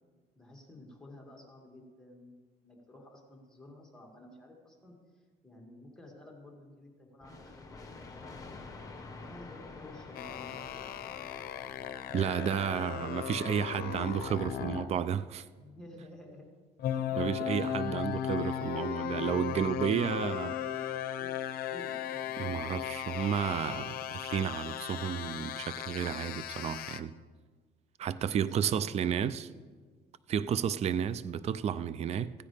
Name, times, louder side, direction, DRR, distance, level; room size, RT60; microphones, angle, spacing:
voice 1, 0.4-8.4 9.1-10.9 15.6-16.5 16.9-17.4 19.9-22.3 28.3-29.7 30.5-30.9, left 1 dB, 5° left, 2.2 m, -52 dB
sound 1, 7.2-12.8, left 3 dB, 20° left, 1.4 m, -48 dB
sound 2, 10.2-14.9 16.8-27.0, left 10 dB, 60° left, 0.7 m, -36 dB
voice 2, 12.1-15.5 17.2-20.5 22.4-27.1 28.0-29.5 30.3-32.3, right 8 dB, 40° right, 0.4 m, -32 dB
16.5 x 9.7 x 3.4 m
cardioid pair, 110°, 17 cm